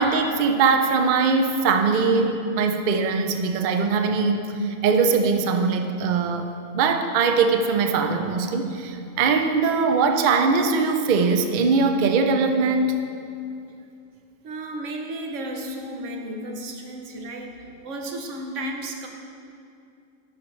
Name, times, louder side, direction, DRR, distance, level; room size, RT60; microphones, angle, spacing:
voice 1, 0.0-6.5 6.7-13.0, right 4 dB, 80° right, 5 dB, 0.4 m, -21 dB
voice 2, 14.4-19.1, right 1 dB, 65° right, 2 dB, 1.1 m, -33 dB
10.5 x 5.1 x 3.1 m, 2.5 s
omnidirectional pair, 1.4 m